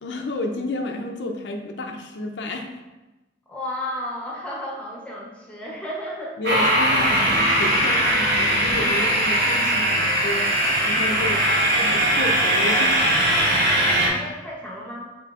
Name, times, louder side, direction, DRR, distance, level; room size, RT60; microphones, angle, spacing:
voice 1, 0.0-2.7 6.4-10.5 10.8-11.4 11.8-13.1, left 2 dB, 85° left, 3 dB, 0.5 m, -31 dB
voice 2, 3.5-7.4 11.2-11.6 13.8-15.1, left 1 dB, 5° left, -3 dB, 0.7 m, -34 dB
sound 1, 6.4-14.1, right 1 dB, 65° right, 1.5 m, -20 dB
5.8 x 3.7 x 2.4 m, 1.1 s
head